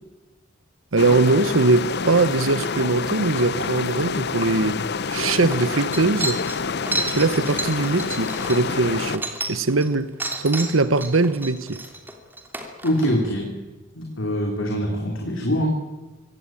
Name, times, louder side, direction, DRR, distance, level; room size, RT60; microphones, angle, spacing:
voice 1, 0.9-4.8 5.1-6.4 7.1-10.1 10.4-11.8, right 3 dB, 80° right, 1.1 m, -21 dB
sound 1, 1.0-9.2, left 5 dB, 55° left, 0.7 m, -27 dB
sound 2, 4.8-4.9 5.2-9.9 10.2-13.1, right 2 dB, 10° right, 3.0 m, -31 dB
voice 2, 12.8-13.6 13.9-15.7, equal, 75° left, 3.5 m, -24 dB
24.5 x 17.0 x 9.1 m
head